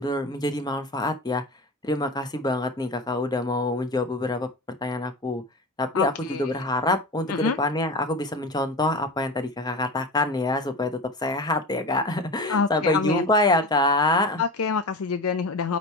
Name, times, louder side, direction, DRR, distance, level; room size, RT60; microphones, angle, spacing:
voice 1, 0.0-1.4 1.8-4.5 4.8-5.4 5.8-14.4, left 2 dB, 20° left, 1.0 m, -25 dB
voice 2, 5.9-6.5 7.3-7.6 12.5-13.2 14.4-15.8, left 6 dB, 75° left, 0.5 m, -26 dB
8.9 x 3.1 x 4.5 m
head